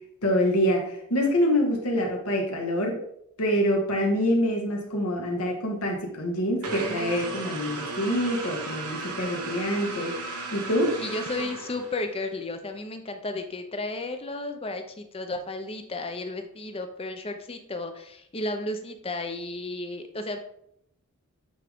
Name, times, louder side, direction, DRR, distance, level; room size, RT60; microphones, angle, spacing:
voice 1, 0.2-3.0 3.4-10.1 10.5-10.9, equal, 75° left, 0 dB, 1.6 m, -25 dB
sound 1, 6.6-12.2, right 3 dB, 85° right, 1.1 m, -35 dB
voice 2, 11.0-20.4, left 2 dB, 25° left, 6 dB, 0.6 m, -33 dB
8.4 x 3.7 x 3.6 m, 0.72 s
head